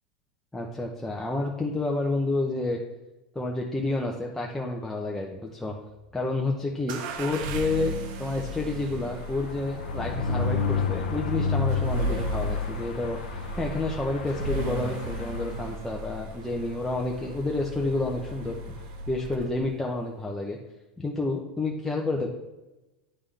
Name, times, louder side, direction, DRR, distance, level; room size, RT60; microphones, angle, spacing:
voice 1, 0.5-2.8 3.3-5.8 6.1-7.9 8.2-20.6 21.0-22.3, left 2 dB, 5° left, -1 dB, 0.8 m, -30 dB
sound 1, 6.9-19.7, right 1 dB, 60° right, 0.7 m, -35 dB
sound 2, 7.7-16.2 16.6-16.8 17.0-17.1 17.4-17.7, left 5 dB, 85° left, 0.6 m, -32 dB
9.9 x 3.5 x 3.4 m, 1.0 s
hypercardioid pair, 95°, 5 cm